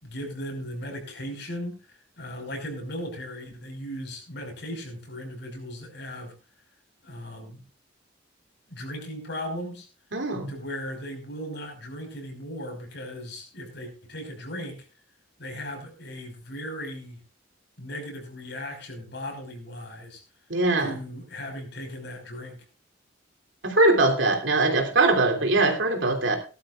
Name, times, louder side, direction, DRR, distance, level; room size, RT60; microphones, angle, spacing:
voice 1, 0.0-6.3 7.0-7.6 8.7-9.9 10.5-14.8 15.4-17.2 17.8-20.2 20.8-22.6, equal, 60° left, 3 dB, 5.2 m, -37 dB
voice 2, 10.1-10.5 20.5-20.9 23.6-26.4, right 2 dB, 75° right, 3 dB, 3.1 m, -22 dB
18.5 x 12.0 x 2.4 m, 0.34 s
head